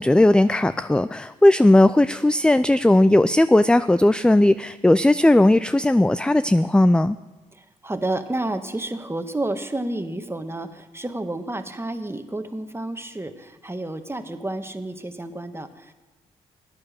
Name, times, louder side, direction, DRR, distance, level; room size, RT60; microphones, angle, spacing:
voice 1, 0.0-7.2, left 1 dB, 5° left, 14 dB, 0.4 m, -17 dB
voice 2, 7.5-15.9, right 2 dB, 15° right, 8 dB, 1.4 m, -30 dB
13.0 x 9.7 x 6.6 m, 1.2 s
hypercardioid pair, 45°, 16 cm